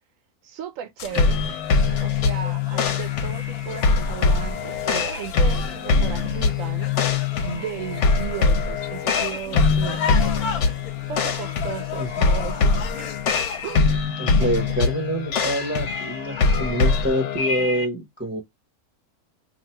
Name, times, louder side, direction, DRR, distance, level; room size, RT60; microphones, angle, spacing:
voice 1, 0.4-1.4 2.0-6.9 7.4-10.2 11.1-13.1 13.6-13.9 14.4-14.6, right 9 dB, 65° right, 1.0 m, -35 dB
sound 1, 1.0-13.8, left 7 dB, 85° left, 1.2 m, -35 dB
sound 2, 1.1-17.8, left 4 dB, 60° left, 1.0 m, -23 dB
voice 2, 14.2-18.4, equal, 10° right, 0.8 m, -26 dB
2.9 x 2.5 x 4.3 m
omnidirectional pair, 1.6 m